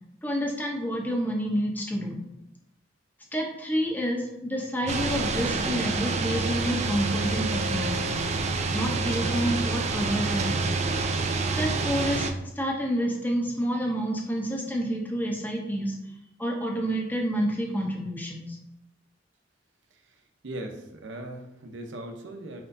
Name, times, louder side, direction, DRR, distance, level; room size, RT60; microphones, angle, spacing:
voice 1, 0.2-2.2 3.3-8.2 8.7-10.7 11.6-16.1 16.4-18.6, equal, 10° left, 0 dB, 0.7 m, -29 dB
sound 1, 4.9-12.3, right 3 dB, 35° right, 0.3 m, -27 dB
voice 2, 19.9-22.7, right 1 dB, 75° right, 3 dB, 0.7 m, -40 dB
4.7 x 4.3 x 2.6 m, 0.84 s
head